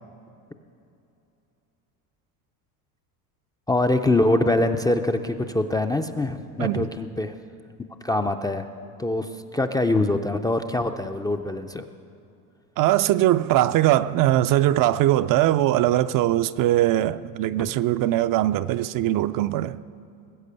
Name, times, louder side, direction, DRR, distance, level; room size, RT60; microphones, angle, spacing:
voice 1, 3.7-7.3 8.0-8.6 9.0-11.8 17.6-17.7, left 2 dB, 10° left, 0.4 m, -24 dB
voice 2, 12.8-19.8, right 14 dB, 50° right, 0.5 m, -21 dB
20.0 x 8.2 x 6.8 m
supercardioid pair, 110°, 44 cm